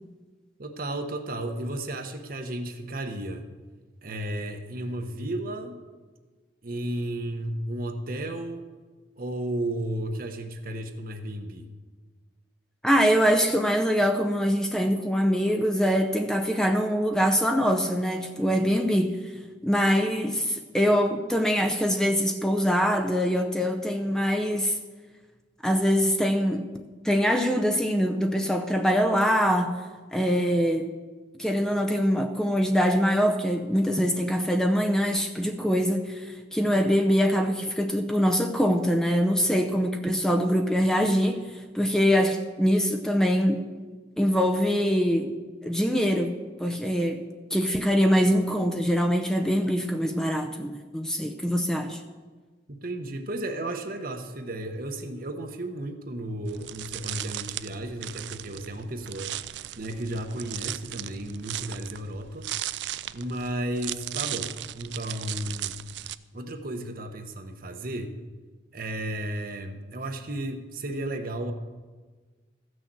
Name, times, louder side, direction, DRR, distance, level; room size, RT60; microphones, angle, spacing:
voice 1, 0.6-3.4 4.0-5.8 6.6-8.7 9.2-11.7 52.8-59.4 59.8-62.5 63.1-65.8 66.3-68.2 68.7-71.5, right 1 dB, 50° right, 6 dB, 1.0 m, -33 dB
voice 2, 12.8-19.2 19.6-24.8 25.6-26.7 27.0-29.8 30.1-30.9 31.4-41.4 41.7-43.6 44.2-52.0, equal, 5° left, 4 dB, 0.6 m, -24 dB
sound 1, 56.5-66.2, right 13 dB, 70° right, 0.4 m, -37 dB
14.5 x 6.4 x 7.6 m, 1.4 s
head